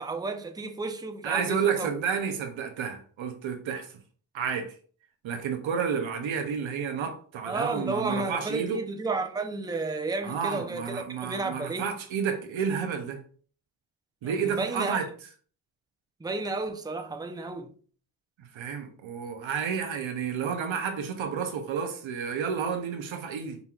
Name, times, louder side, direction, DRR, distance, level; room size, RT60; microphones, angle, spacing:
voice 1, 0.0-1.9 7.4-11.9 14.2-15.0 16.2-17.7, right 3 dB, 10° right, 0.6 m, -32 dB
voice 2, 1.2-4.0 4.3-4.7 5.2-8.8 10.2-13.2 14.2-15.1 18.4-23.6, right 6 dB, 85° right, 0.8 m, -31 dB
5.4 x 2.8 x 2.4 m
cardioid pair, 45°, 46 cm